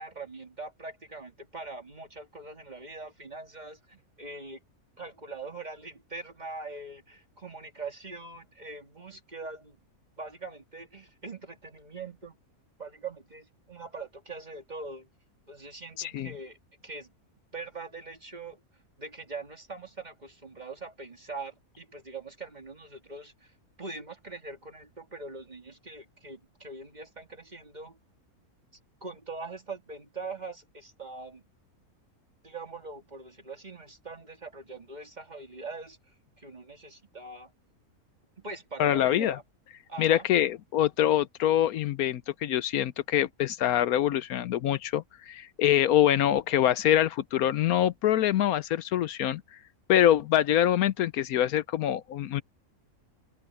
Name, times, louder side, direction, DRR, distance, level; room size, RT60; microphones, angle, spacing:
voice 1, 0.0-4.6 5.0-9.8 10.2-12.4 12.8-15.1 15.5-16.6 16.8-17.1 17.5-18.6 19.0-28.0 29.0-31.4 32.4-37.5 38.4-39.4 39.9-40.3, right 3 dB, 30° right, 2.4 m, -42 dB
voice 2, 16.0-16.3 38.8-39.4 40.0-49.4 49.9-52.4, left 11 dB, 80° left, 1.2 m, -25 dB
open air
omnidirectional pair, 1.5 m